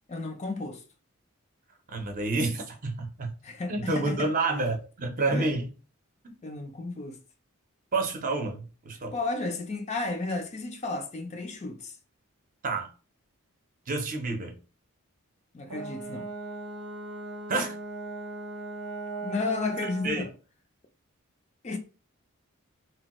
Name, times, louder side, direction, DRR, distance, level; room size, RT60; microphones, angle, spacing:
voice 1, 0.1-0.8 3.4-4.3 5.3-5.5 6.4-7.2 9.1-12.0 15.5-16.3 19.2-20.3 21.6-21.8, left 3 dB, 30° left, 0.3 m, -33 dB
voice 2, 1.9-3.3 3.7-5.7 6.2-6.3 7.9-9.1 12.6-12.9 13.9-14.6 17.5-17.8 19.8-20.3, right 3 dB, 35° right, 0.6 m, -29 dB
Brass instrument, 15.7-20.2, right 2 dB, 90° right, 0.7 m, -38 dB
3.0 x 2.2 x 2.9 m
head